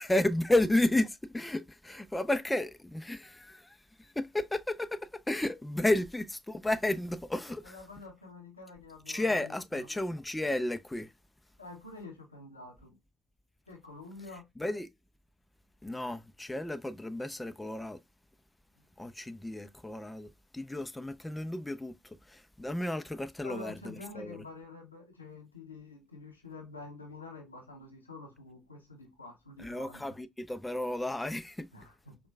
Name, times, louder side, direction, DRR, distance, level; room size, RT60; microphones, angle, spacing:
voice 1, 0.0-7.8 9.1-11.1 14.6-14.9 15.8-18.0 19.0-24.4 29.6-31.7, left 1 dB, 10° left, 0.4 m, -32 dB
voice 2, 7.6-9.3 9.7-9.9 11.6-13.0 13.7-14.4 23.4-30.0 31.7-32.2, left 3 dB, 90° left, 0.7 m, -47 dB
4.5 x 2.2 x 2.2 m
figure-of-eight pair, 45°, 0 cm